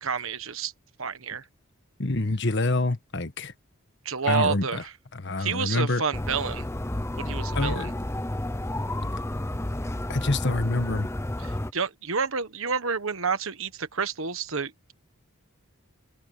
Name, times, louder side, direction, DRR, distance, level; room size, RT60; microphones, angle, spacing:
voice 1, 0.0-0.7 1.0-1.4 4.0-4.9 5.4-6.6 7.2-7.9 11.4-14.9, right 5 dB, 65° right, 1.4 m, -29 dB
voice 2, 2.0-3.5 4.3-4.8 5.1-6.0 7.5-7.9 10.1-11.1, left 2 dB, 50° left, 1.4 m, -26 dB
sound 1, 6.1-11.7, left 1 dB, 10° left, 0.7 m, -31 dB
open air
head